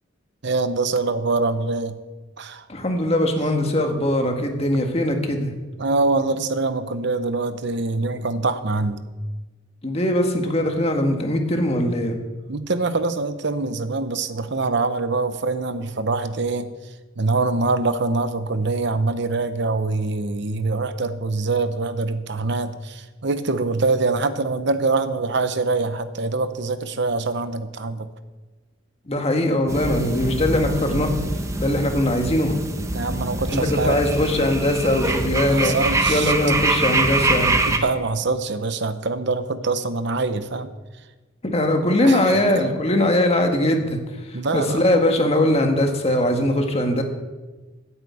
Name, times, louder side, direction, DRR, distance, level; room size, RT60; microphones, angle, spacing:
voice 1, 0.4-2.0 2.4-2.6 5.8-9.0 12.5-16.7 17.2-28.1 31.1-31.3 32.9-34.0 35.5-36.3 37.7-40.7 42.0-42.4 44.3-44.8, right 3 dB, 60° right, 11 dB, 0.8 m, -24 dB
voice 2, 2.7-5.5 9.8-12.1 29.0-31.1 31.6-32.6 33.5-37.6 41.4-47.0, left 1 dB, 30° left, 3 dB, 1.6 m, -21 dB
sound 1, 29.7-37.8, right 2 dB, 15° right, 0.9 m, -24 dB
9.1 x 8.2 x 8.4 m, 1.2 s
head